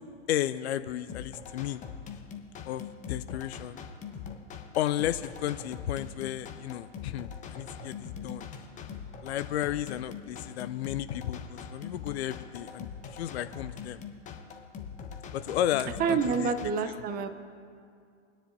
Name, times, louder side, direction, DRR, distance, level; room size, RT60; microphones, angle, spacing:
voice 1, 0.3-1.8 2.7-3.8 4.8-8.5 9.2-14.0 15.3-16.5, left 12 dB, 60° left, 12 dB, 0.5 m, -33 dB
sound 1, 1.1-16.7, left 6 dB, 20° left, 1.0 m, -42 dB
voice 2, 16.0-17.3, right 6 dB, 25° right, 9 dB, 0.8 m, -28 dB
24.0 x 10.0 x 2.7 m, 2.3 s
hypercardioid pair, 105°, 37 cm